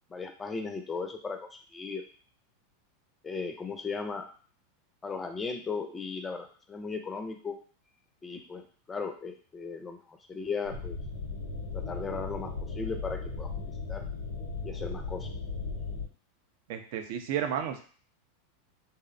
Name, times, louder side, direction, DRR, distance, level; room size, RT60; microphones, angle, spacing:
voice 1, 0.1-2.0 3.2-4.3 5.0-7.6 8.2-11.0 11.7-14.0 14.6-15.3, left 4 dB, 20° left, 5 dB, 0.4 m, -37 dB
sound 1, 10.6-16.1, left 4 dB, 85° left, 0.6 m, -37 dB
voice 2, 16.7-17.8, right 9 dB, 65° right, 6 dB, 0.4 m, -32 dB
2.6 x 2.0 x 2.5 m, 0.43 s
hypercardioid pair, 100°, 0 cm